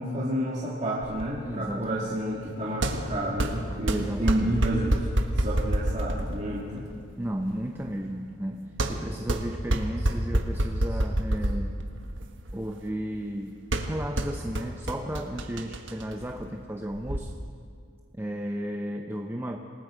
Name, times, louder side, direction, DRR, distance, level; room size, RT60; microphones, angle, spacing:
voice 1, 0.0-5.1 5.3-6.9, right 1 dB, 35° right, -6 dB, 2.3 m, -30 dB
sound 1, 1.0-17.2, right 1 dB, 65° right, 1.5 m, -30 dB
voice 2, 1.4-2.1 3.9-4.6 7.2-11.8 12.5-17.3 18.2-19.6, equal, 10° right, 3 dB, 0.7 m, -34 dB
27.5 x 18.5 x 5.1 m, 2.3 s
head